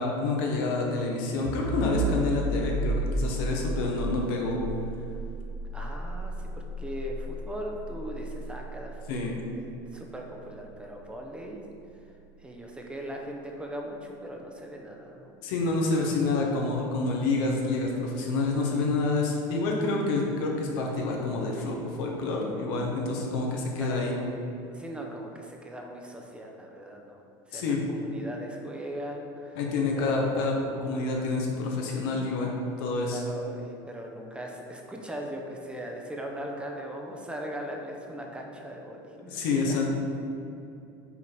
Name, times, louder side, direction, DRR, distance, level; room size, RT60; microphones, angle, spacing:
voice 1, 0.0-4.6 9.1-9.3 15.4-24.1 27.5-27.8 29.6-30.5 30.8-32.5 32.8-33.2 39.2-39.8, left 3 dB, 75° left, 0 dB, 1.1 m, -28 dB
sound 1, 1.4-12.9, right 1 dB, 10° left, 0.9 m, -34 dB
voice 2, 5.7-9.5 9.9-11.6 12.4-15.3 23.8-24.3 24.7-27.2 27.5-29.6 30.0-30.5 33.1-39.8, equal, 10° right, 0 dB, 0.6 m, -39 dB
5.8 x 3.9 x 4.5 m, 2.6 s
supercardioid pair, 120°, 12 cm